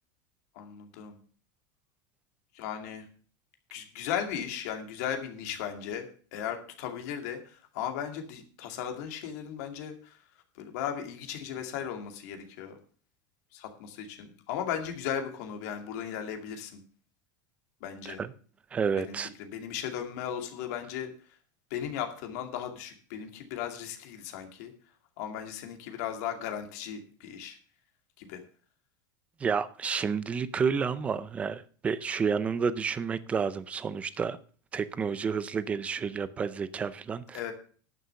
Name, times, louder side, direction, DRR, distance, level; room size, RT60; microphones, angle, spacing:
voice 1, 0.6-1.2 2.5-3.1 3.7-6.1 6.3-10.2 10.6-12.8 13.5-16.8 17.8-18.2 19.0-21.1 21.7-24.7 25.2-27.6 28.2-28.4 37.3-37.5, left 9 dB, 55° left, 2.3 m, -36 dB
voice 2, 18.7-19.3 29.4-34.4 34.7-37.5, right 6 dB, 10° right, 0.5 m, -30 dB
11.0 x 6.7 x 6.8 m
supercardioid pair, 175°, 10 cm